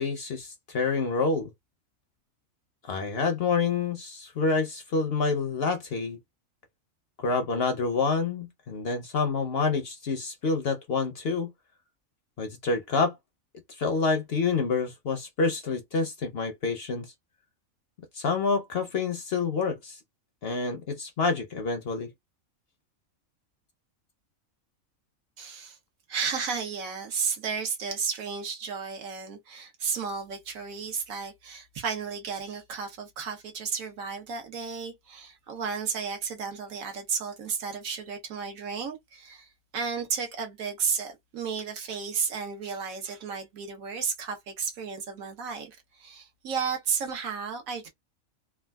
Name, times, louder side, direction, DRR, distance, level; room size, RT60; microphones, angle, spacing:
voice 1, 0.0-1.5 2.8-6.2 7.2-11.5 12.4-13.2 13.8-17.1 18.1-20.0 20.4-22.1, left 4 dB, 60° left, 0.7 m, -27 dB
voice 2, 25.4-25.8 26.1-47.9, right 6 dB, 75° right, 1.3 m, -33 dB
3.4 x 2.3 x 2.3 m
omnidirectional pair, 1.4 m